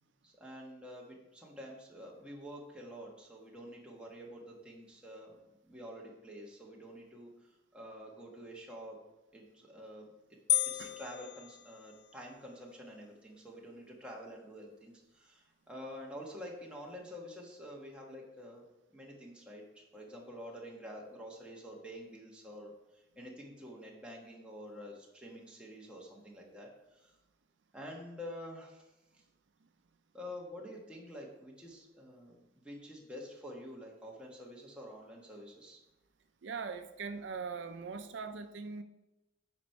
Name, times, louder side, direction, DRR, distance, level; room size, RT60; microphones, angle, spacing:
voice 1, 0.2-5.4 5.7-7.3 7.7-9.0 9.3-10.1 10.6-18.6 18.9-27.1 27.7-28.9 30.1-35.8, equal, 5° right, -2 dB, 1.5 m, -48 dB
sound 1, 10.5-12.3, left 13 dB, 65° left, 0.4 m, -34 dB
voice 2, 36.4-38.8, right 5 dB, 75° right, 8 dB, 0.5 m, -41 dB
8.6 x 5.2 x 4.5 m, 0.98 s
head